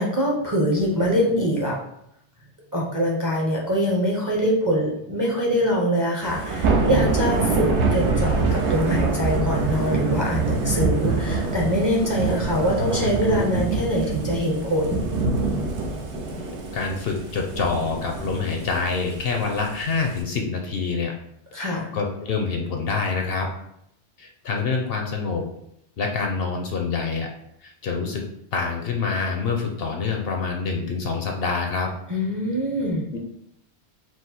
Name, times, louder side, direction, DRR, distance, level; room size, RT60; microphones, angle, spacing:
voice 1, 0.0-1.8 2.7-15.1 21.5-21.9 32.1-33.1, equal, 20° right, -3 dB, 0.7 m, -23 dB
Thunder / Rain, 6.2-20.2, right 3 dB, 75° right, 1.1 m, -25 dB
voice 2, 16.7-21.1 21.6-23.5 24.2-25.4 26.0-27.3 27.6-28.2 28.5-31.9 33.1-33.2, left 4 dB, 65° left, 2 dB, 0.8 m, -26 dB
4.7 x 2.0 x 4.2 m, 0.76 s
omnidirectional pair, 1.2 m